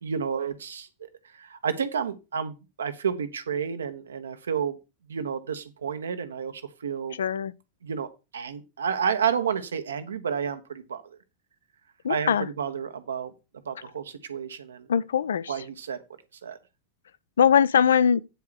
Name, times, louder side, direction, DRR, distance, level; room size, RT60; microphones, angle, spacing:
voice 1, 0.0-4.8 5.1-7.2 7.8-8.1 8.3-11.0 12.1-13.3 13.6-14.9 15.5-16.0 16.4-16.6, right 7 dB, 70° right, 1.2 m, -30 dB
voice 2, 7.2-7.5 12.0-12.5 14.9-15.5 17.4-18.2, left 8 dB, 65° left, 0.5 m, -21 dB
9.3 x 4.7 x 6.2 m
figure-of-eight pair, 90°, 0 cm